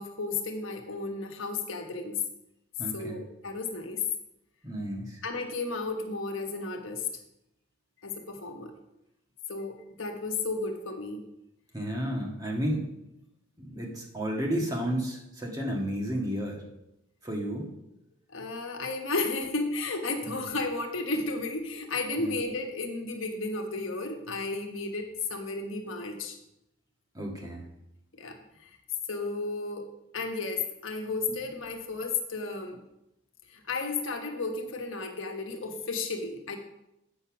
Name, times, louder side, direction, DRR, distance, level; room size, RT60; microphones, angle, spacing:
voice 1, 0.0-2.2 2.9-4.0 5.2-7.1 8.0-8.7 9.5-11.2 18.3-26.4 28.1-28.8 29.1-32.8 33.5-36.6, left 3 dB, 75° left, 3 dB, 1.3 m, -33 dB
voice 2, 2.8-3.2 4.6-5.2 11.7-12.9 13.6-16.6 17.2-17.7 20.2-20.4 22.2-22.3 27.1-27.7 31.3-31.4, equal, 15° right, -1 dB, 1.6 m, -32 dB
8.2 x 6.6 x 5.9 m, 0.87 s
head